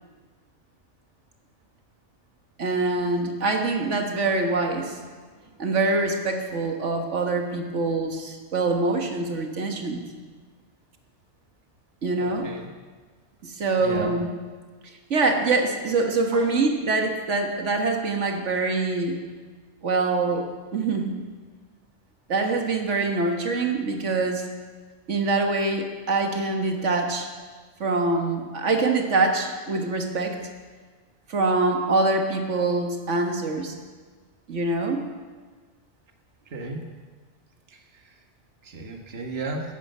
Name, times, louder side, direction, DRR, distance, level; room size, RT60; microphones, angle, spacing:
voice 1, 2.6-5.0 5.6-10.0 12.0-12.5 13.4-14.3 15.1-19.2 19.8-21.1 22.3-24.5 25.1-27.3 27.8-30.4 31.3-33.7 34.5-35.0, right 3 dB, 90° right, 3 dB, 1.8 m, -24 dB
voice 2, 12.2-12.7 13.8-14.1 16.3-16.4 36.5-36.8 38.6-39.6, right 3 dB, 60° right, 3 dB, 1.6 m, -33 dB
15.5 x 13.5 x 5.6 m, 1.4 s
omnidirectional pair, 1.2 m